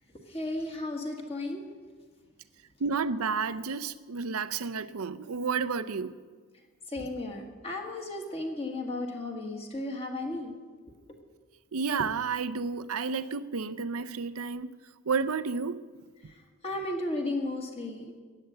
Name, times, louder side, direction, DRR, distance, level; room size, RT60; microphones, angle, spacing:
voice 1, 0.3-1.6 6.9-10.5 16.2-18.2, left 2 dB, 25° left, 1.6 m, -34 dB
voice 2, 2.8-6.1 11.7-14.7 15.1-15.8, right 5 dB, 70° right, 0.6 m, -31 dB
14.5 x 9.2 x 7.9 m
head